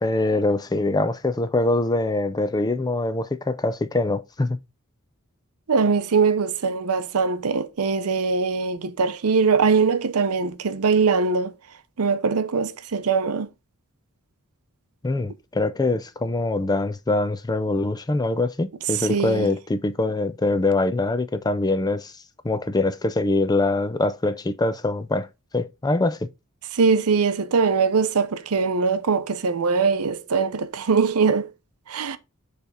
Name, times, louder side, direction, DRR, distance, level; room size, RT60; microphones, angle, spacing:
voice 1, 0.0-4.6 15.0-22.1 22.4-25.3 25.5-26.3, left 2 dB, 20° left, 0.4 m, -23 dB
voice 2, 5.7-11.5 12.0-13.5 19.0-19.5 26.7-31.5 31.9-32.2, right 5 dB, 75° right, 0.6 m, -22 dB
6.7 x 3.4 x 4.1 m
head